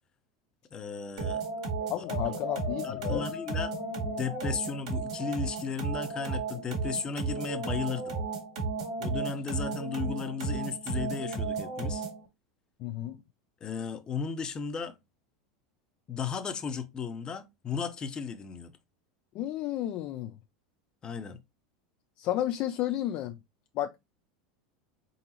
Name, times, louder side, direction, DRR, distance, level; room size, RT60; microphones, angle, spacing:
voice 1, 0.7-1.4 2.0-2.1 2.8-3.7 4.0-8.2 9.0-12.1 13.6-15.0 16.1-18.7 21.0-21.4, left 6 dB, 30° left, 0.7 m, -35 dB
sound 1, 1.2-12.3, right 4 dB, 85° right, 1.8 m, -34 dB
Brass instrument, 1.8-4.6 6.1-6.7, left 11 dB, 80° left, 1.2 m, -41 dB
voice 2, 1.9-3.3 12.8-13.2 19.3-20.3 22.2-23.4 23.7-23.9, left 13 dB, 50° left, 0.3 m, -32 dB
3.9 x 3.7 x 2.8 m
hypercardioid pair, 105°, 3 cm